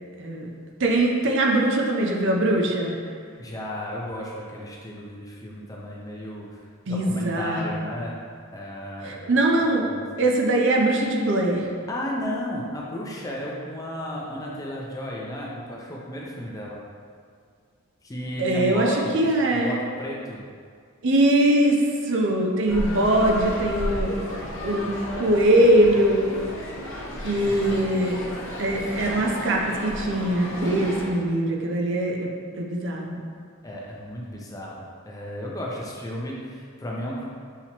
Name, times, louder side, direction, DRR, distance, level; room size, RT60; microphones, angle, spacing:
voice 1, 0.2-0.5 0.8-2.9 6.9-7.8 9.0-9.9 10.2-11.6 18.4-18.9 19.1-19.8 21.0-24.1 24.6-24.9 25.2-26.3 27.2-28.2 28.6-32.3 32.6-33.2, right 1 dB, 60° right, 0 dB, 0.5 m, -22 dB
voice 2, 3.4-6.6 6.9-8.2 8.5-9.3 9.9-10.0 11.9-16.8 18.0-19.2 19.5-20.4 27.5-27.8 28.8-29.3 33.6-37.2, left 1 dB, 15° left, -4 dB, 0.5 m, -34 dB
sound 1, 22.7-31.1, left 1 dB, 60° left, 0.7 m, -33 dB
5.7 x 2.9 x 2.9 m, 2.1 s
head